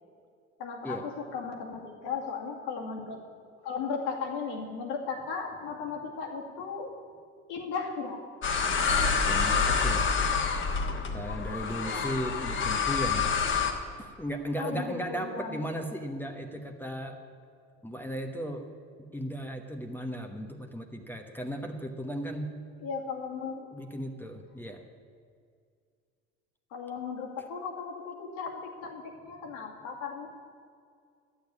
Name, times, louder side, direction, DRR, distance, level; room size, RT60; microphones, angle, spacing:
voice 1, 0.6-3.2 3.6-6.9 7.5-8.2 11.8-12.1 14.6-15.7 22.8-23.7 26.7-30.3, left 5 dB, 85° left, 0 dB, 2.3 m, -36 dB
sound 1, 8.4-13.7, left 5 dB, 40° left, 1.5 m, -27 dB
voice 2, 9.2-10.1 11.1-13.3 14.0-17.2 17.8-18.7 19.1-22.6 23.7-24.8, equal, 5° left, 4 dB, 1.0 m, -36 dB
11.5 x 7.1 x 9.6 m, 2.2 s
cardioid pair, 105°, 29 cm